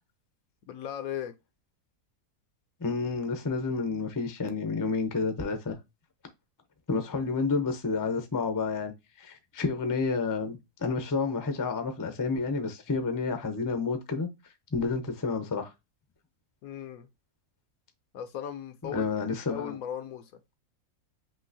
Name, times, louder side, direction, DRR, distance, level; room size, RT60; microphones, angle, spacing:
voice 1, 0.7-1.3 16.6-17.1 18.1-19.1 19.5-20.6, left 9 dB, 70° left, 1.0 m, -37 dB
voice 2, 2.8-5.8 6.9-14.3 14.7-15.7 18.9-19.8, left 4 dB, 20° left, 0.5 m, -30 dB
5.5 x 2.9 x 2.7 m
omnidirectional pair, 1.7 m